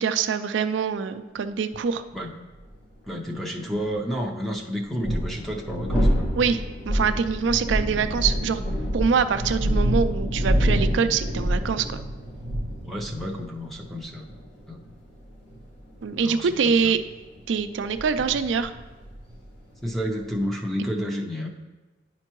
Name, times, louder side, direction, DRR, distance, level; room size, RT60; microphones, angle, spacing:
voice 1, 0.0-2.0 6.4-6.6 6.9-8.6 8.9-12.0 16.0-17.0 17.5-18.7, right 6 dB, 75° right, 10 dB, 0.4 m, -24 dB
sound 1, 2.6-2.7 4.8-20.4, equal, 75° left, 2.0 m, -27 dB
voice 2, 3.1-6.1 12.8-14.3 14.7-14.8 16.2-16.9 19.8-21.5, equal, ahead, 0 dB, 0.6 m, -30 dB
10.5 x 4.4 x 3.0 m, 1.2 s
head